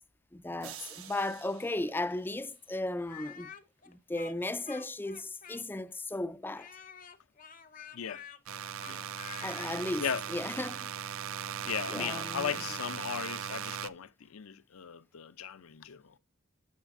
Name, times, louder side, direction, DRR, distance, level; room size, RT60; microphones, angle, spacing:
voice 1, 0.3-3.5 3.9-6.7 9.4-10.9 11.9-12.8, left 2 dB, 10° left, 0.4 m, -36 dB
sound 1, 0.6-2.9, right 9 dB, 85° right, 1.4 m, -50 dB
Speech, 3.0-5.9 6.5-9.8, left 7 dB, 40° left, 0.7 m, -49 dB
voice 2, 7.9-8.2 8.9-9.1 10.0-10.2 11.6-16.2, left 7 dB, 75° left, 0.6 m, -37 dB
sound 2, 8.5-13.9, right 9 dB, 70° right, 0.5 m, -38 dB
9.5 x 6.7 x 2.5 m
head